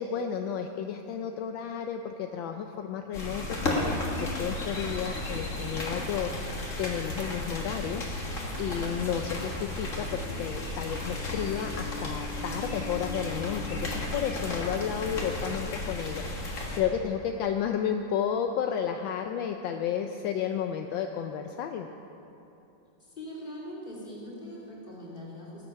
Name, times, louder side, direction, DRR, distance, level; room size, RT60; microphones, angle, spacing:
voice 1, 0.0-8.3 8.6-21.9, left 8 dB, 75° left, 5 dB, 1.3 m, -32 dB
sound 1, 3.1-16.8, left 2 dB, 40° left, 1.9 m, -34 dB
sound 2, 3.3-12.1, right 5 dB, 85° right, 1.7 m, -45 dB
sound 3, 3.6-15.6, left 1 dB, 60° left, 0.6 m, -47 dB
voice 2, 23.0-25.7, equal, 25° left, -5 dB, 2.9 m, -42 dB
19.0 x 8.0 x 5.7 m, 2.9 s
omnidirectional pair, 2.2 m